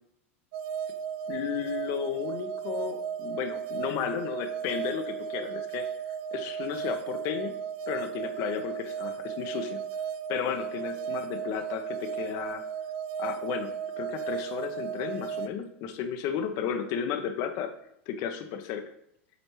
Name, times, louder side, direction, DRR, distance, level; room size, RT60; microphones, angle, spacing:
sound 1, 0.5-15.5, right 8 dB, 65° right, 0.5 m, -35 dB
voice 1, 1.3-5.9 6.3-7.6 7.9-9.8 10.3-12.6 13.2-13.7 14.0-17.7 18.1-18.8, left 8 dB, 55° left, 7 dB, 0.9 m, -33 dB
8.0 x 4.2 x 3.2 m, 0.76 s
hypercardioid pair, 105°, 7 cm